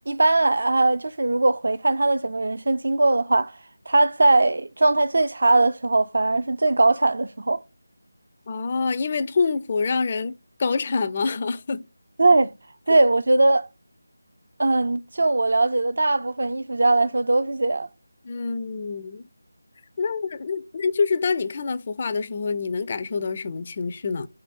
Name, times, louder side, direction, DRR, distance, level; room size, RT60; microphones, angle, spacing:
voice 1, 0.1-3.5 3.9-7.6 12.2-12.5 12.9-13.7 14.6-17.9, right 2 dB, 60° right, 0.4 m, -20 dB
voice 2, 8.5-11.8 12.9-13.0 18.2-19.2 20.0-24.3, left 4 dB, 30° left, 0.4 m, -26 dB
3.4 x 3.3 x 3.6 m
figure-of-eight pair, 165°, 0 cm